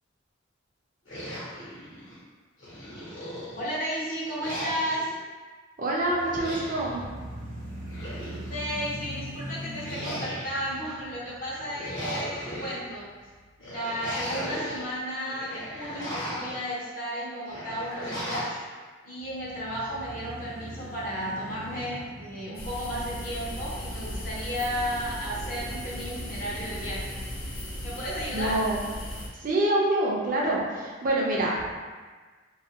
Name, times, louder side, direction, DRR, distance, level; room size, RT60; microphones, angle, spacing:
sound 1, 1.1-2.2 2.6-3.8 4.4-5.1 6.2-6.9 7.7-8.7 9.8-10.8 11.5-12.7 13.6-14.8 15.2-16.6 17.5-18.6, equal, 70° left, 1.0 m, -37 dB
voice 1, 3.6-5.1 8.4-13.1 13.6-18.6 19.0-27.2 27.8-28.6, equal, 40° left, -7 dB, 0.6 m, -33 dB
voice 2, 5.8-7.0 28.3-28.8 29.4-31.7, right 1 dB, 40° right, -3 dB, 0.5 m, -26 dB
sound 2, 5.9-14.1 14.6-14.7 19.2-23.7, equal, 90° right, 0.7 m, -42 dB
sound 3, 22.5-29.3, equal, 85° left, 0.6 m, -36 dB
2.6 x 2.4 x 2.8 m, 1.4 s
head